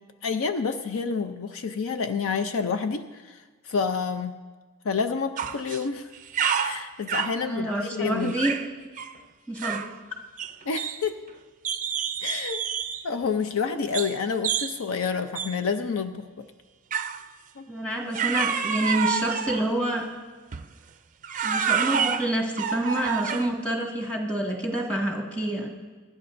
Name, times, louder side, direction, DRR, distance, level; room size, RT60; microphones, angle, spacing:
voice 1, 0.2-4.4 4.8-6.1 6.6-8.3 10.7-11.2 12.2-12.6 13.0-16.5 17.6-17.7, left 5 dB, 65° left, 9 dB, 0.5 m, -28 dB
sound 1, 5.4-5.8 6.1-7.4 8.2-8.7 9.0-9.2 9.6-10.0 10.4-11.3 11.6-13.1 13.9-14.2 14.4-14.8 15.4-15.6 16.9-17.2 18.1-19.7 20.5-20.7 21.2-23.6, right 7 dB, 35° right, 0.4 m, -28 dB
voice 2, 7.2-8.5 9.5-9.8 17.7-20.0 21.4-25.7, right 1 dB, 5° left, -2 dB, 1.9 m, -27 dB
24.5 x 10.5 x 2.6 m, 1.4 s
head